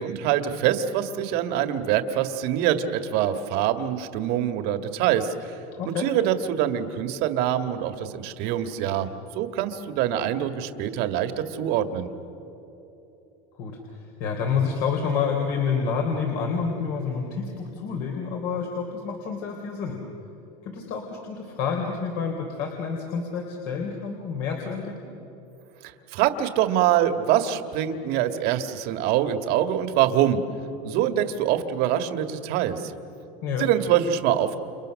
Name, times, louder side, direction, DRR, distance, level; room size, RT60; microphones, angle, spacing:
voice 1, 0.0-5.5 5.9-9.1 9.4-12.1 25.8-30.4 30.8-32.9 33.6-34.6, right 10 dB, 60° right, 8 dB, 1.9 m, -24 dB
voice 2, 5.8-6.1 13.6-20.0 20.6-25.1 33.4-33.7, left 6 dB, 60° left, 1 dB, 3.8 m, -28 dB
30.0 x 29.5 x 6.5 m, 3.0 s
supercardioid pair, 135°, 18 cm